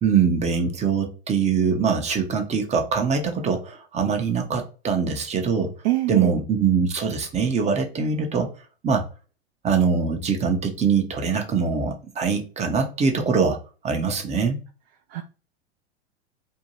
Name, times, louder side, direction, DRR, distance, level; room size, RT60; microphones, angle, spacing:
voice 1, 0.0-5.7 6.1-8.5 8.8-9.0 9.6-13.6 13.8-14.6, right 5 dB, 20° right, 4 dB, 0.6 m, -23 dB
voice 2, 5.8-6.3 15.1-15.2, right 17 dB, 65° right, 4 dB, 0.5 m, -23 dB
2.6 x 2.2 x 2.9 m, 0.34 s
hypercardioid pair, 100°, 33 cm